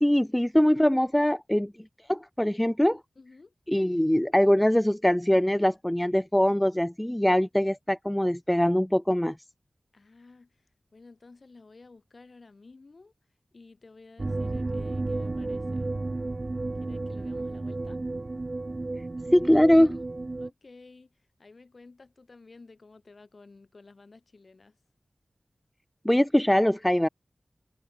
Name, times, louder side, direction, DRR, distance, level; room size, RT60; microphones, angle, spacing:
voice 1, 0.0-1.7 2.1-3.0 3.7-9.3 19.3-20.0 26.0-27.1, equal, 10° left, 0.6 m, -22 dB
voice 2, 3.1-3.5 9.9-10.6 10.9-13.1 13.5-15.9 16.8-18.0 20.4-24.8, left 3 dB, 55° left, 4.6 m, -53 dB
sound 1, 14.2-20.5, right 2 dB, 40° right, 0.5 m, -32 dB
wide cardioid pair, 95°, 0 cm